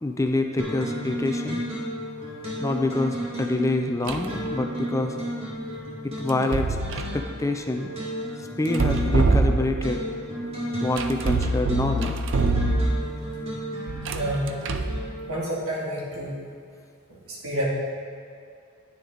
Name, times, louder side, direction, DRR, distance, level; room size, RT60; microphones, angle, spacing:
voice 1, 0.0-1.6 2.6-5.2 6.0-7.9 8.6-10.0 10.8-12.2, left 2 dB, 15° left, 5 dB, 0.4 m, -26 dB
sound 1, 0.6-15.3, equal, 25° right, 2.1 m, -33 dB
sound 2, 4.1-4.4 6.3-7.2 8.7-10.0 11.0-13.2 13.9-15.0, right 3 dB, 55° right, 0.5 m, -24 dB
voice 2, 14.0-14.5 15.3-16.3 17.1-17.7, right 1 dB, 90° right, -4 dB, 2.5 m, -29 dB
10.0 x 9.2 x 3.9 m, 2.4 s
head